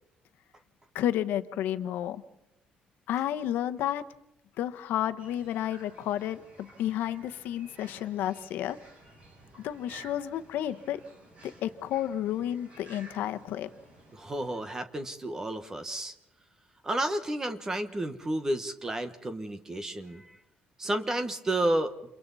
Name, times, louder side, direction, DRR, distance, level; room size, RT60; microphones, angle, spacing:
voice 1, 0.9-2.2 3.1-4.0 4.6-8.8 9.6-11.0 11.4-13.7, left 11 dB, 85° left, 10 dB, 1.1 m, -31 dB
sound 1, 5.2-14.6, right 2 dB, 40° right, 7.1 m, -54 dB
voice 2, 14.1-16.1 16.8-20.4 20.8-22.0, right 1 dB, 15° right, 9 dB, 1.4 m, -31 dB
29.5 x 28.0 x 4.2 m, 0.83 s
cardioid pair, 175°, 3 cm